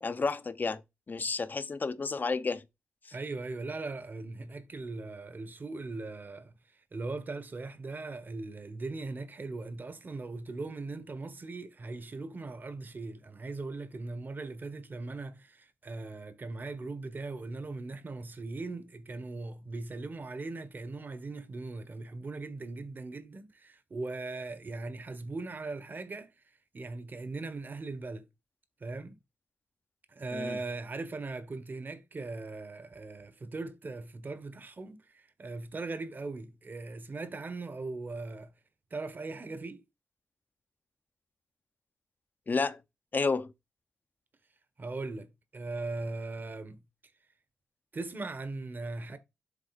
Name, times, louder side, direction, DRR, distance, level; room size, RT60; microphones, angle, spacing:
voice 1, 0.0-0.8 1.1-2.6 3.0-3.1 30.3-30.6 42.5-42.8 43.1-43.5, left 4 dB, 45° left, 0.8 m, -31 dB
voice 2, 3.1-26.3 26.7-28.3 28.8-29.2 30.1-38.5 38.9-39.8 44.8-46.8 47.9-49.2, right 3 dB, 45° right, 1.4 m, -39 dB
7.5 x 4.1 x 4.2 m
supercardioid pair, 45°, 4 cm